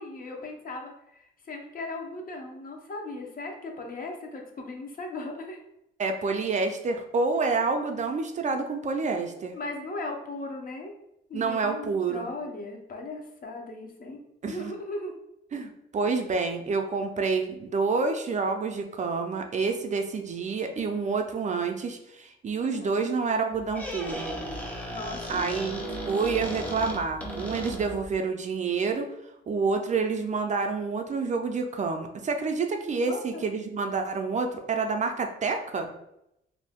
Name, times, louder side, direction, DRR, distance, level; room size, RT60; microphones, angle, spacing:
voice 1, 0.0-5.6 9.5-10.9 11.3-15.1 22.6-23.1 24.9-25.4 33.1-33.4, left 2 dB, 45° left, 2 dB, 0.7 m, -38 dB
voice 2, 6.0-9.6 11.3-12.3 14.4-14.7 15.5-24.3 25.3-29.1 29.5-35.9, right 4 dB, 35° right, 4 dB, 0.4 m, -28 dB
Squeak, 23.5-28.1, right 1 dB, 5° left, 0.7 m, -35 dB
2.5 x 2.2 x 3.4 m, 0.82 s
cardioid pair, 90°, 20 cm